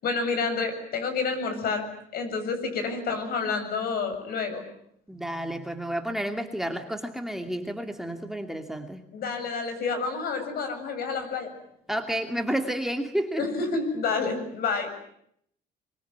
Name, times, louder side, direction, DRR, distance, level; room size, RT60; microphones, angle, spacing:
voice 1, 0.0-1.9 2.1-4.6 9.1-11.5 13.4-14.9, left 4 dB, 65° left, 7 dB, 7.7 m, -29 dB
voice 2, 5.1-9.0 11.9-13.4, right 1 dB, ahead, 4 dB, 2.6 m, -30 dB
24.5 x 24.0 x 9.5 m, 0.72 s
cardioid pair, 110°, 17 cm